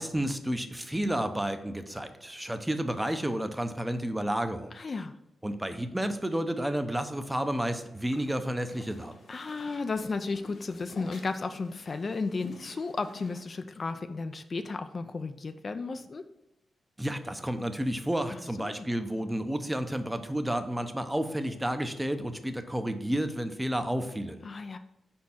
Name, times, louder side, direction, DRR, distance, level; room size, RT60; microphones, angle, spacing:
voice 1, 0.0-4.7 5.4-9.1 17.0-24.5, right 1 dB, 10° right, 8 dB, 0.6 m, -31 dB
voice 2, 4.7-5.1 9.3-16.2 18.3-18.9 24.4-24.8, left 4 dB, 45° left, 8 dB, 0.4 m, -34 dB
sound 1, 7.8-13.4, left 2 dB, 70° left, 1.7 m, -50 dB
4.6 x 4.3 x 5.7 m, 0.88 s
cardioid pair, 65°, 0 cm